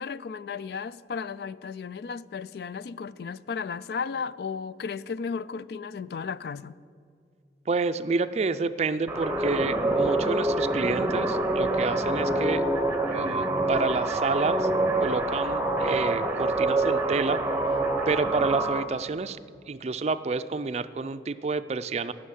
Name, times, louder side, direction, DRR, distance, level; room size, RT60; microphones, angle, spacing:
voice 1, 0.0-6.7, left 5 dB, 60° left, 0.3 m, -34 dB
voice 2, 7.7-12.7 13.1-14.7 15.0-17.4 18.1-19.4 19.7-22.1, right 4 dB, 35° right, 0.4 m, -29 dB
sound 1, 9.1-18.8, right 2 dB, 10° right, 0.8 m, -26 dB
14.0 x 6.4 x 9.3 m
head